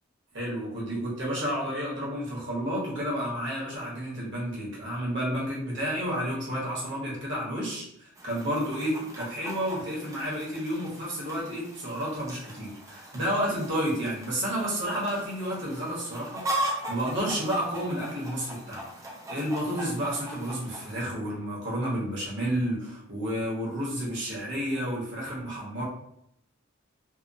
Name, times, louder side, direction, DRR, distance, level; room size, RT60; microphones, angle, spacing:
voice 1, 0.3-18.9 19.3-25.8, equal, 60° right, -5 dB, 0.9 m, -31 dB
Chicken rooster, 8.2-21.1, right 1 dB, 15° right, 0.5 m, -39 dB
2.8 x 2.0 x 2.5 m, 0.75 s
head